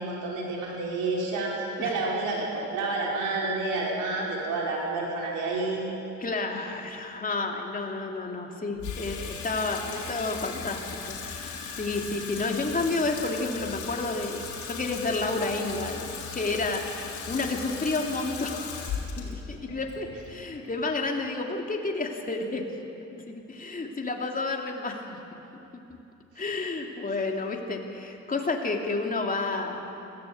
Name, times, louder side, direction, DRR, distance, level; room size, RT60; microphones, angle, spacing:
voice 1, 0.0-5.8, right 3 dB, 90° right, -3 dB, 5.0 m, -29 dB
voice 2, 6.2-18.7 19.2-22.7 23.1-25.2 26.4-29.8, left 3 dB, 30° left, 1 dB, 2.7 m, -31 dB
Water tap faucet / Sink (filling or washing), 8.8-21.2, left 6 dB, 85° left, 3.5 m, -38 dB
20.5 x 16.0 x 8.5 m, 2.9 s
cardioid pair, 90°, 30 cm